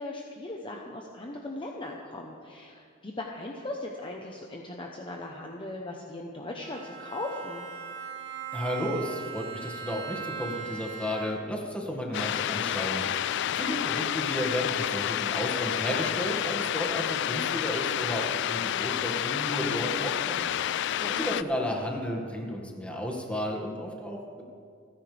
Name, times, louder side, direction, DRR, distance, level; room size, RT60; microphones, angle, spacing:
voice 1, 0.0-7.6 21.0-21.5, left 2 dB, 25° left, 0 dB, 1.0 m, -38 dB
Bowed string instrument, 6.6-11.7, right 6 dB, 60° right, 2.0 m, -39 dB
voice 2, 8.5-13.2 13.5-20.7 21.1-24.4, equal, 5° left, -1 dB, 2.0 m, -33 dB
sound 1, 12.1-21.4, left 10 dB, 60° left, 0.3 m, -29 dB
29.5 x 10.0 x 3.5 m, 2.2 s
head